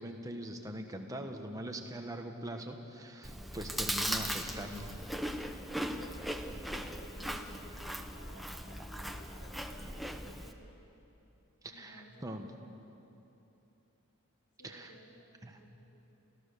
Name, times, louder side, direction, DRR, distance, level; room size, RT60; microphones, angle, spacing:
voice 1, 0.0-4.9 11.6-12.5 14.6-14.9 15.4-15.6, right 1 dB, 15° right, 3 dB, 1.3 m, -42 dB
Chewing mastication, 3.2-10.5, equal, ahead, 0.8 m, -38 dB
voice 2, 5.9-10.7 11.7-12.3 14.6-15.3 15.5-16.0, equal, 55° left, -2 dB, 2.1 m, -56 dB
29.0 x 14.5 x 6.8 m, 2.9 s
head